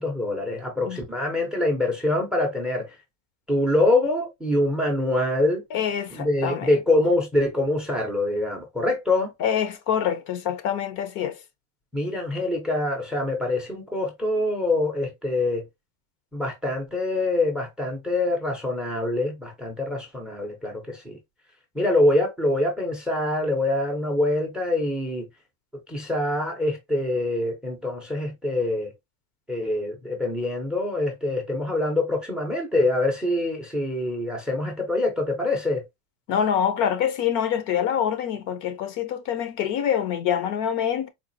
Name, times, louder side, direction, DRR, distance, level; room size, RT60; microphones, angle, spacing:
voice 1, 0.0-3.0 3.5-5.6 6.1-9.3 11.9-15.6 16.3-21.2 21.7-25.3 25.9-28.9 29.5-35.8, left 2 dB, ahead, 0.5 m, -25 dB
voice 2, 5.7-6.7 9.4-11.4 36.3-41.1, left 9 dB, 45° left, 0.6 m, -25 dB
4.0 x 2.4 x 2.6 m
supercardioid pair, 155°, 43 cm